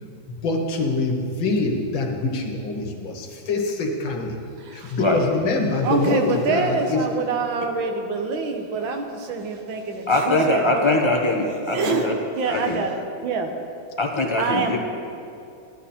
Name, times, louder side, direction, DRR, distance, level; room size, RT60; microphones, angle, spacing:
voice 1, 0.4-4.4 4.7-7.0, left 3 dB, 80° left, 2 dB, 2.1 m, -24 dB
voice 2, 4.6-5.0 5.8-11.0 11.6-13.5 14.4-14.8, right 4 dB, 85° right, 4 dB, 1.8 m, -26 dB
voice 3, 10.1-12.1 12.5-12.8 14.0-14.8, left 2 dB, 25° left, 1 dB, 0.7 m, -22 dB
15.0 x 11.0 x 4.3 m, 2.6 s
omnidirectional pair, 2.1 m